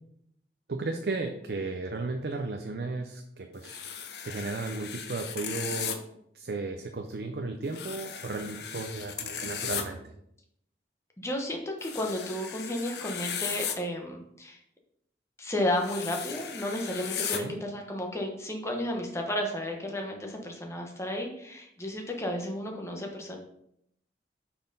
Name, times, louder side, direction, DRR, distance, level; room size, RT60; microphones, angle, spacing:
voice 1, 0.7-3.8 4.2-6.0 6.3-10.0 17.3-17.5, right 3 dB, 65° right, 4 dB, 0.6 m, -34 dB
sound 1, 3.6-6.0 7.7-9.8 11.8-13.8 15.8-17.4, left 8 dB, 70° left, 0.7 m, -36 dB
voice 2, 11.2-14.6 15.4-23.4, left 1 dB, 15° left, 2 dB, 0.9 m, -33 dB
5.8 x 4.3 x 5.3 m, 0.75 s
head